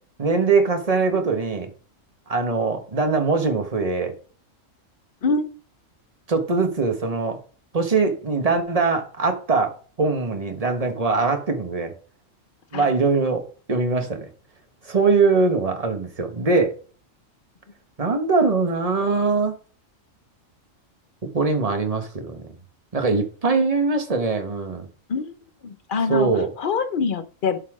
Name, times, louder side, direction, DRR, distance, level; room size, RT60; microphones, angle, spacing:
voice 1, 0.2-1.7 2.3-4.1 6.3-7.4 7.7-11.9 12.7-14.3 14.8-16.7 18.0-19.5 21.3-22.5 22.9-24.9 26.1-26.5, right 4 dB, 30° right, 5 dB, 1.3 m, -22 dB
voice 2, 25.6-26.3 26.6-27.6, left 4 dB, 45° left, 10 dB, 0.9 m, -24 dB
11.5 x 4.2 x 4.9 m, 0.40 s
omnidirectional pair, 1.4 m